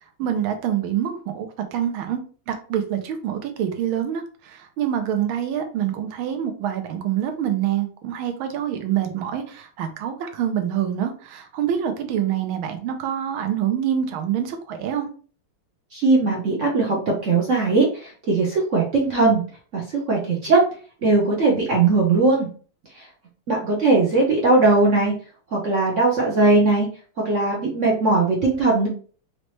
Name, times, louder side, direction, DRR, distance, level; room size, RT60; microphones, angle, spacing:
voice 1, 0.2-2.2 2.5-15.1, right 10 dB, 75° right, 7 dB, 1.5 m, -26 dB
voice 2, 15.9-17.0 17.2-19.4 19.7-20.6 21.0-22.5 23.5-25.1 25.5-26.9 27.2-28.9, right 3 dB, 60° right, -2 dB, 0.8 m, -19 dB
4.1 x 3.2 x 3.1 m, 0.40 s
omnidirectional pair, 2.4 m